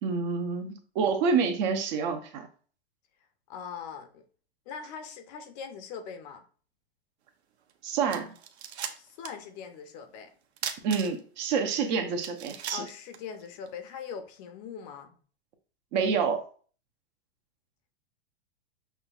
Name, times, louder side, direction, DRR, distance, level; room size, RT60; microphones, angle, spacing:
voice 1, 0.0-2.5 7.8-8.3 10.8-12.8 15.9-16.4, right 5 dB, 45° right, 0.7 m, -28 dB
voice 2, 3.5-4.2 4.7-6.4 9.0-10.3 12.7-15.2, left 7 dB, 40° left, 0.6 m, -41 dB
sound 1, 7.7-7.8 8.1-9.5 9.7-9.8 10.6-11.4 11.9-12.0 12.2-13.7, right 8 dB, 85° right, 0.6 m, -38 dB
5.8 x 2.2 x 2.3 m
hypercardioid pair, 135°, 32 cm